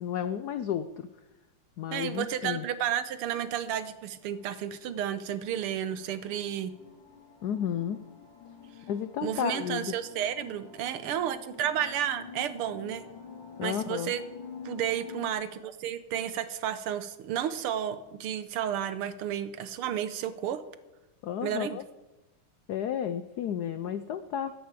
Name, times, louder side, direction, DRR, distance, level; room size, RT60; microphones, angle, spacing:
voice 1, 0.0-1.1 1.8-2.7 7.4-8.0 8.9-9.9 13.6-14.1 21.2-21.8 22.7-24.5, left 9 dB, 85° left, 11 dB, 0.8 m, -32 dB
voice 2, 1.9-6.7 9.2-13.1 13.6-14.2 14.7-20.6 21.4-21.8, right 10 dB, 90° right, 12 dB, 1.8 m, -32 dB
sound 1, 4.0-15.3, left 6 dB, 70° left, 2.7 m, -48 dB
15.5 x 8.5 x 7.5 m, 1.1 s
omnidirectional pair, 2.4 m